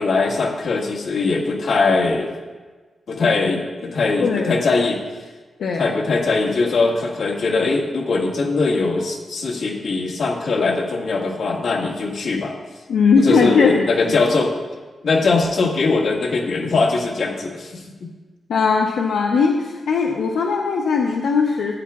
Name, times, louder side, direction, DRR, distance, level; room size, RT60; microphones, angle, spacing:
voice 1, 0.0-2.3 3.1-5.0 5.8-12.5 13.2-14.5 15.0-17.8, left 3 dB, 65° left, -3 dB, 1.9 m, -21 dB
voice 2, 4.2-4.5 5.6-5.9 12.9-13.9 18.5-21.7, left 5 dB, 90° left, 0 dB, 0.8 m, -18 dB
15.5 x 9.3 x 2.4 m, 1.3 s
wide cardioid pair, 165°, 0 cm